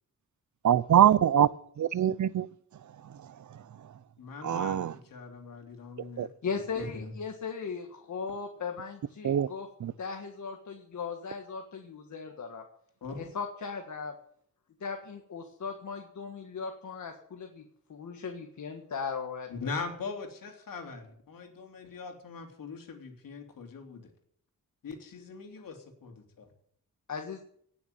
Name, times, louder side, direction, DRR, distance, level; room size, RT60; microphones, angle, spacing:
voice 1, 0.6-1.5 1.8-2.5 4.4-4.9 6.2-6.3 9.2-9.5 9.8-9.9, right 10 dB, 60° right, 0.7 m, -23 dB
voice 2, 4.2-6.3 6.7-7.1 13.0-13.3 19.5-24.1 24.8-26.5, left 4 dB, 85° left, 3.3 m, -41 dB
voice 3, 6.4-9.7 10.0-12.6 13.2-14.1 14.8-17.6 17.9-19.7 27.1-27.4, left 5 dB, 60° left, 1.8 m, -38 dB
18.5 x 7.1 x 9.0 m
wide cardioid pair, 145°, 33 cm